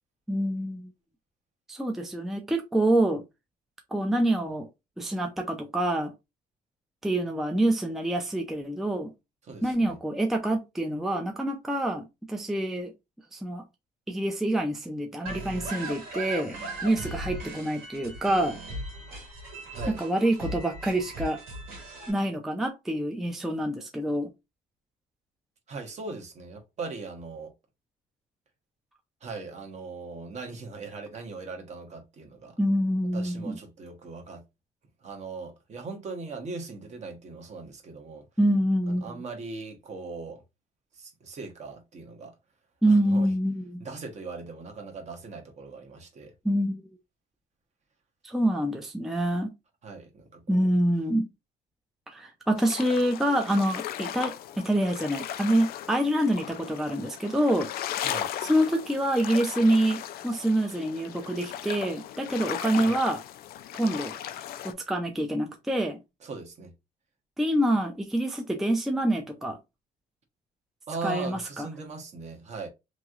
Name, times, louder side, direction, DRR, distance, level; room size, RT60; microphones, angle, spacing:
voice 1, 0.3-0.9 1.7-3.2 3.9-4.7 5.0-6.1 7.0-9.1 9.6-12.9 13.3-13.6 14.1-18.6 19.9-21.4 22.1-24.3 32.6-33.6 38.4-39.0 42.8-43.8 46.4-46.8 48.2-49.5 50.5-51.3 52.1-57.7 58.4-63.2 63.7-64.1 64.6-66.0 67.4-69.6 71.0-71.7, right 1 dB, ahead, 0.4 m, -26 dB
voice 2, 9.4-10.0 19.7-20.0 25.7-27.5 29.2-32.6 33.1-34.4 35.0-38.2 38.9-40.4 40.9-42.3 42.9-43.3 43.8-46.3 49.8-50.7 58.0-58.3 62.8-63.0 66.2-66.7 70.9-72.7, right 4 dB, 40° right, 1.0 m, -39 dB
sound 1, 15.3-22.1, right 1 dB, 65° right, 1.6 m, -38 dB
sound 2, 52.6-64.7, left 11 dB, 65° left, 0.4 m, -37 dB
3.0 x 2.7 x 2.4 m
cardioid pair, 110°, 17 cm